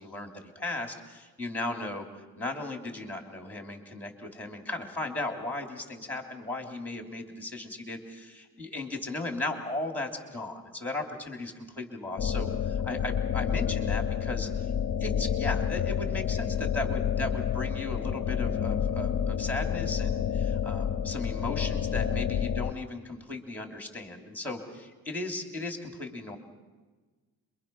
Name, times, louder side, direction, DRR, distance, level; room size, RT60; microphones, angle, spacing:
voice 1, 0.0-2.0 2.4-14.7 15.0-26.4, left 2 dB, 5° left, 3 dB, 3.0 m, -36 dB
sound 1, 12.2-22.7, left 8 dB, 40° left, 0.6 m, -29 dB
27.0 x 23.0 x 5.9 m, 1.3 s
wide cardioid pair, 155°, 37 cm